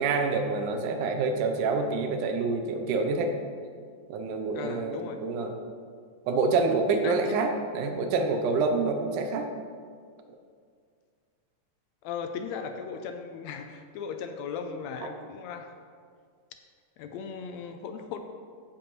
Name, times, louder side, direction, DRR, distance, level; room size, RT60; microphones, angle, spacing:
voice 1, 0.0-3.3 4.1-5.5 6.3-9.5, right 4 dB, 80° right, 5 dB, 2.3 m, -27 dB
voice 2, 4.5-5.2 7.0-7.2 12.0-15.7 17.0-18.2, left 6 dB, 80° left, 7 dB, 1.6 m, -37 dB
15.0 x 7.4 x 3.1 m, 2.1 s
omnidirectional pair, 3.6 m